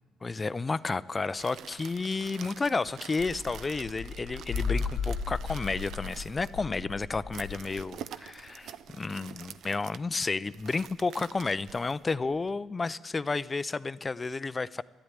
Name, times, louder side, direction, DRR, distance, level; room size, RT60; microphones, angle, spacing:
voice 1, 0.2-14.8, left 3 dB, 25° left, 17 dB, 0.5 m, -31 dB
sound 1, 1.1-12.5, right 9 dB, 75° right, 0.6 m, -47 dB
sound 2, 3.2-7.8, left 5 dB, 90° left, 0.9 m, -35 dB
12.5 x 11.5 x 9.7 m, 1.3 s
cardioid pair, 90°, 0 cm